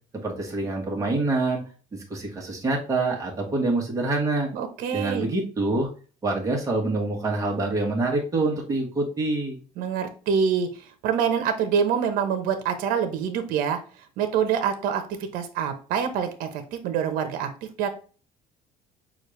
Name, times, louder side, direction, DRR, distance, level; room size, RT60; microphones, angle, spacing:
voice 1, 0.2-1.6 2.1-4.5 4.9-5.9 6.2-9.6, right 2 dB, 20° right, -1 dB, 1.3 m, -26 dB
voice 2, 4.5-5.3 9.8-13.8 14.2-17.9, right 7 dB, 70° right, 7 dB, 0.9 m, -26 dB
6.3 x 2.5 x 3.2 m, 0.37 s
cardioid pair, 150°, 15 cm